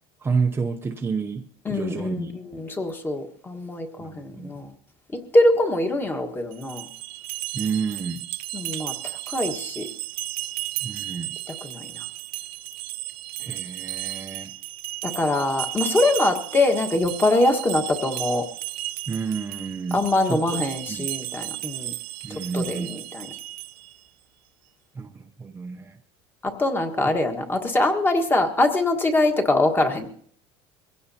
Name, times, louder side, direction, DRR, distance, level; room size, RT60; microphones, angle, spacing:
voice 1, 0.2-2.3 4.0-4.6 7.5-8.2 10.8-11.3 13.4-14.5 19.1-20.0 20.3-20.6 20.9-21.1 22.2-22.9 25.0-26.0, right 5 dB, 15° right, 0.7 m, -30 dB
voice 2, 1.6-4.7 5.1-6.9 8.5-9.9 11.5-12.0 15.0-18.4 19.9-21.9 22.3-23.3 26.4-30.1, left 2 dB, 15° left, 1.5 m, -23 dB
sound 1, 6.5-24.0, right 18 dB, 75° right, 0.7 m, -34 dB
22.5 x 16.5 x 2.8 m
cardioid pair, 135°, 13 cm